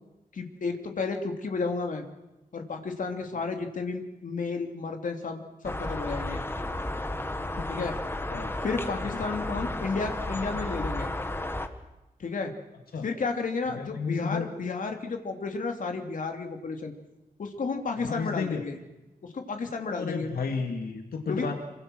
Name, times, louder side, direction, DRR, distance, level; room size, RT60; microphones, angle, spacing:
voice 1, 0.3-2.0 2.5-6.4 7.7-7.9 8.6-11.1 12.2-12.5 13.0-16.9 17.4-18.8 19.2-20.3 21.3-21.5, left 4 dB, 60° left, 4 dB, 3.0 m, -32 dB
sound 1, 5.6-11.7, left 1 dB, 15° left, 1.6 m, -33 dB
voice 2, 13.8-14.5 18.0-18.6 19.9-21.5, left 5 dB, 75° left, 3 dB, 2.4 m, -32 dB
27.0 x 24.5 x 6.4 m, 1.0 s
wide cardioid pair, 155°, 15 cm